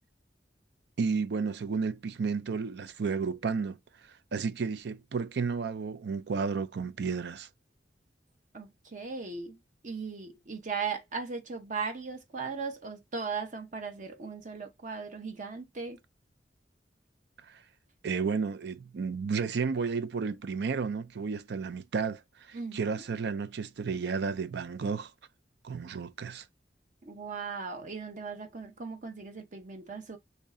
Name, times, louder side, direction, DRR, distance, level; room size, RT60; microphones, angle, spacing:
voice 1, 1.0-3.8 4.3-7.5 17.5-17.6 18.0-22.2 22.5-25.1 25.6-26.4, right 5 dB, 65° right, 0.4 m, -32 dB
voice 2, 8.5-9.6 9.8-16.0 22.5-23.0 27.0-30.2, right 5 dB, 45° right, 0.8 m, -38 dB
3.2 x 2.6 x 3.6 m
head